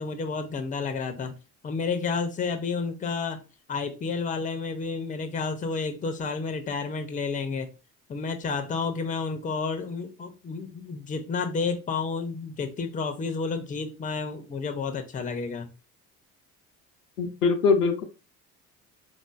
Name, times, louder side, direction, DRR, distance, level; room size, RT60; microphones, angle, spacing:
voice 1, 0.0-1.4 1.6-3.4 3.7-7.7 8.1-15.7, left 4 dB, 20° left, 0.5 m, -30 dB
voice 2, 17.2-18.0, left 4 dB, 85° left, 0.5 m, -22 dB
3.7 x 2.5 x 2.3 m
figure-of-eight pair, 55°, 45 cm